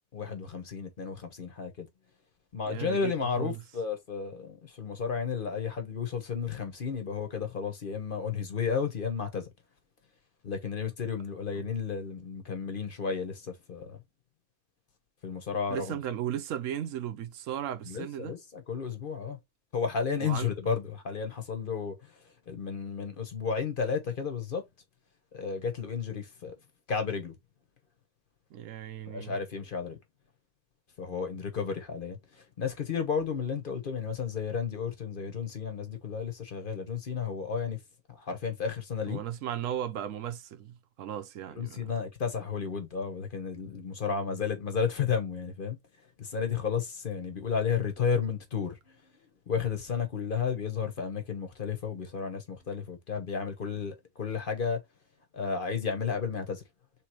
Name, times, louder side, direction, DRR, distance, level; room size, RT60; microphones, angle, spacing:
voice 1, 0.1-1.9 2.5-9.5 10.4-14.0 15.2-16.0 17.8-19.4 19.7-22.1 22.5-24.6 25.3-26.5 26.9-27.3 29.1-30.0 31.0-37.8 38.1-39.2 41.5-45.8 46.2-48.9 49.5-54.8 55.3-56.6, left 6 dB, 45° left, 1.1 m, -32 dB
voice 2, 2.7-3.6 11.5-11.7 15.7-18.4 20.2-20.5 28.5-29.4 39.1-41.9, right 10 dB, 90° right, 1.0 m, -36 dB
3.4 x 3.2 x 4.5 m
omnidirectional pair, 1.3 m